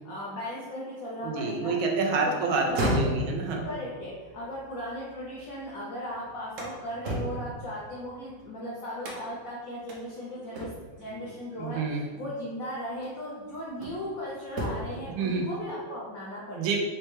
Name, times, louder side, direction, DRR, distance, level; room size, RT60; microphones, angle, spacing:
voice 1, 0.0-1.7 2.1-3.1 3.6-16.8, equal, 75° left, -6 dB, 0.8 m, -37 dB
voice 2, 1.2-3.7 11.6-12.0 15.1-15.5 16.6-16.8, right 4 dB, 85° right, 1 dB, 1.4 m, -28 dB
sound 1, 2.5-5.7 6.1-8.4 9.0-9.5 9.9-10.0 10.5-11.1 12.3-12.4 13.0-14.1 14.5-15.1, equal, 70° right, 0.7 m, -34 dB
4.2 x 2.2 x 3.1 m, 1.4 s
omnidirectional pair, 2.2 m